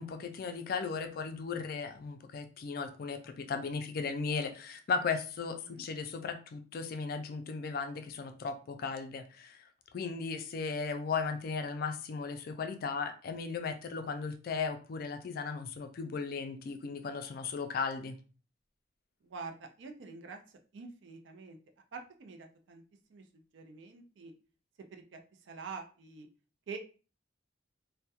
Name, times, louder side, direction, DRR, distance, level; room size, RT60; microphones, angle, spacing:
voice 1, 0.0-9.6 9.9-18.2, left 5 dB, 55° left, 8 dB, 0.3 m, -36 dB
voice 2, 19.2-20.4 20.7-21.6 21.9-22.8 23.1-23.2 23.5-24.3 24.9-26.3 26.7-26.8, right 4 dB, 85° right, 5 dB, 0.4 m, -46 dB
2.2 x 2.1 x 2.7 m, 0.36 s
head